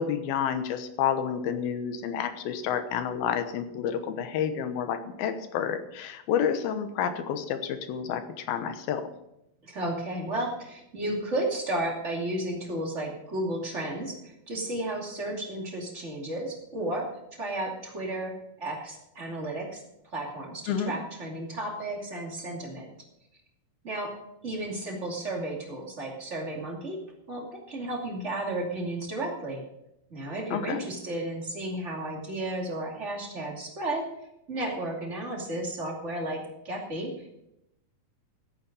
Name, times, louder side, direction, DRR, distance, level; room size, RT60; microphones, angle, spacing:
voice 1, 0.0-9.1 20.7-20.9 30.5-30.9, left 8 dB, 85° left, 9 dB, 2.9 m, -29 dB
voice 2, 9.6-19.8 20.1-22.9 23.8-27.0 27.3-29.6 30.1-34.1 34.5-37.4, right 1 dB, 20° right, -1 dB, 2.3 m, -33 dB
15.0 x 8.8 x 5.3 m, 0.83 s
omnidirectional pair, 4.3 m